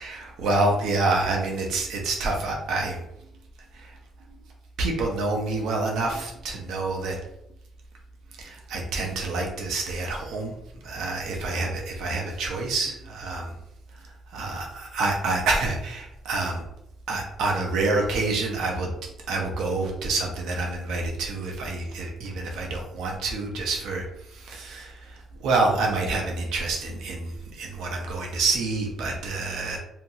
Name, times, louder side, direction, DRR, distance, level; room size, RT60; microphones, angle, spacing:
voice 1, 0.0-3.0 3.7-4.0 4.8-7.2 8.4-10.5 10.8-13.5 14.3-16.6 17.1-18.9 19.3-29.8, right 3 dB, 80° right, 0 dB, 0.5 m, -27 dB
2.8 x 2.4 x 2.6 m, 0.82 s
cardioid pair, 165°, 0 cm